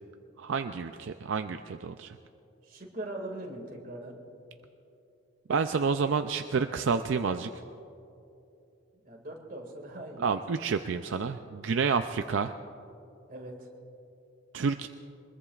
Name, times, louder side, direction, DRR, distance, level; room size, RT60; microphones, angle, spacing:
voice 1, 0.4-2.2 5.5-7.5 10.2-12.5 14.5-14.9, right 5 dB, 75° right, 8 dB, 0.4 m, -29 dB
voice 2, 2.6-4.2 9.0-10.4 13.3-13.7, right 1 dB, 45° right, 1 dB, 2.1 m, -41 dB
23.0 x 21.0 x 2.4 m, 2.7 s
head